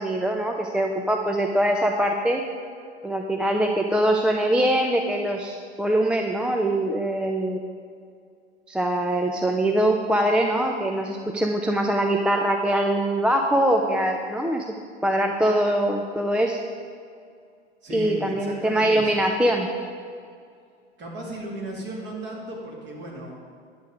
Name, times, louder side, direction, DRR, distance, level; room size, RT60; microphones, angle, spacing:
voice 1, 0.0-2.4 3.0-7.6 8.7-14.7 15.0-16.6 17.9-19.7, right 1 dB, 5° right, 2 dB, 0.4 m, -23 dB
voice 2, 17.8-19.2 21.0-23.3, right 1 dB, 35° right, -2 dB, 2.6 m, -35 dB
10.5 x 7.3 x 5.0 m, 2.3 s
figure-of-eight pair, 85°, 33 cm